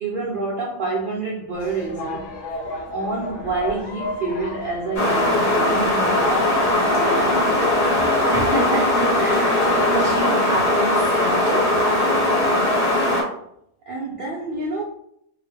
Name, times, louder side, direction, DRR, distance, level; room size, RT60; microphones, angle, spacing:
voice 1, 0.0-2.4 2.9-7.6 13.9-14.8, right 3 dB, 75° right, -4 dB, 0.4 m, -28 dB
sound 1, 1.5-10.2, left 2 dB, 85° left, 1.3 m, -34 dB
sound 2, 4.9-13.2, left 1 dB, 35° left, 0.8 m, -19 dB
voice 2, 8.3-11.8, right 1 dB, 5° right, -4 dB, 0.6 m, -28 dB
2.7 x 2.1 x 3.2 m, 0.71 s
omnidirectional pair, 1.5 m